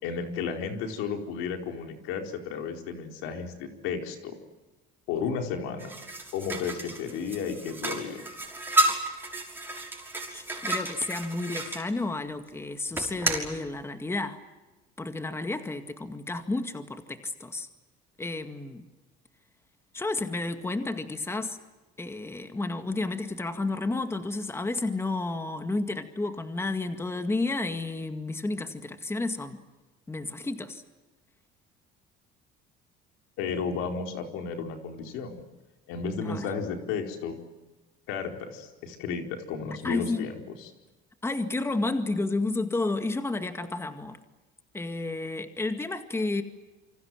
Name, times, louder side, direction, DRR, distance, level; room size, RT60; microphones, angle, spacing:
voice 1, 0.0-4.4 5.1-5.9 6.3-8.2 33.4-35.4 35.9-37.4 38.1-40.7, left 6 dB, 80° left, 4 dB, 4.5 m, -33 dB
sound 1, 5.8-11.8 12.9-13.5, right 1 dB, 10° right, 5.9 m, -31 dB
voice 2, 10.3-14.4 15.0-17.7 18.2-18.9 19.9-21.6 22.0-29.6 30.1-30.8 36.2-36.5 39.8-40.3 41.2-44.2 44.7-46.4, left 2 dB, 10° left, 8 dB, 2.0 m, -31 dB
28.5 x 25.5 x 7.7 m, 1.2 s
cardioid pair, 120°, 21 cm